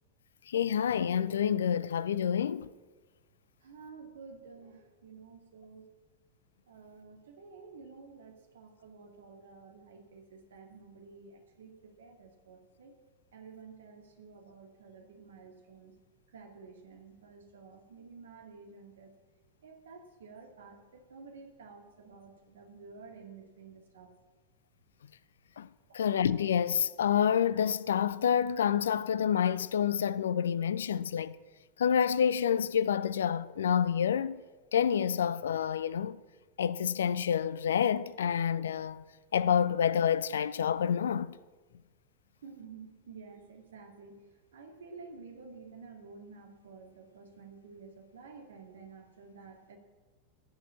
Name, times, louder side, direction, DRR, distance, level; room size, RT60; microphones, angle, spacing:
voice 1, 0.5-2.7 25.6-25.7 25.9-31.3 31.8-34.4 34.7-36.2 36.6-39.0 39.3-41.3, left 8 dB, 65° left, 0.5 m, -28 dB
voice 2, 3.6-5.9 6.7-13.0 13.3-16.0 16.3-19.1 19.6-24.1 25.9-26.0 42.4-44.3 44.5-49.8, right 4 dB, 65° right, 2.2 m, -51 dB
14.5 x 6.8 x 8.6 m
figure-of-eight pair, 90°, 0 cm